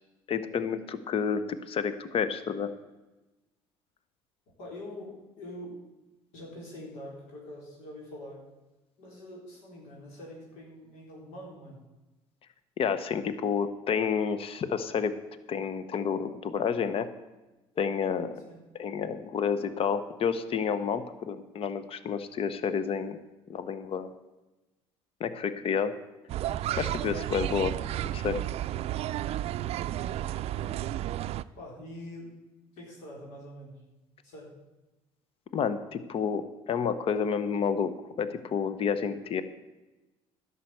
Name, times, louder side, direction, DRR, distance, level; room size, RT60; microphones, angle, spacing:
voice 1, 0.3-2.7 12.8-15.1 15.5-17.1 17.8-18.5 18.8-23.2 23.5-24.1 25.2-25.9 26.8-27.8 28.0-28.4 35.5-37.9 38.2-39.4, left 6 dB, 50° left, 13 dB, 0.9 m, -30 dB
voice 2, 4.6-5.8 6.3-8.4 9.0-11.8 18.5-18.6 30.0-30.7 31.5-32.3 32.7-33.8 34.2-34.6, left 1 dB, 75° left, -3 dB, 3.9 m, -44 dB
sound 1, 26.3-31.4, right 13 dB, 55° right, 0.4 m, -32 dB
11.5 x 6.9 x 7.7 m, 1.1 s
supercardioid pair, 75°, 13 cm